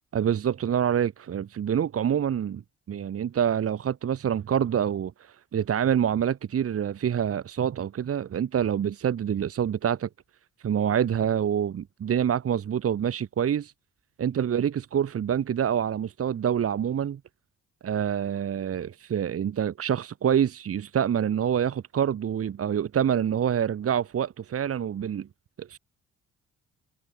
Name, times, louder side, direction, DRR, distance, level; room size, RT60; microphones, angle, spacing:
voice 1, 0.1-2.6 2.9-10.1 10.6-13.7 14.2-17.2 17.8-25.3 25.6-25.8, right 9 dB, 50° right, 1.4 m, -26 dB
cardioid pair, 90°, 30 cm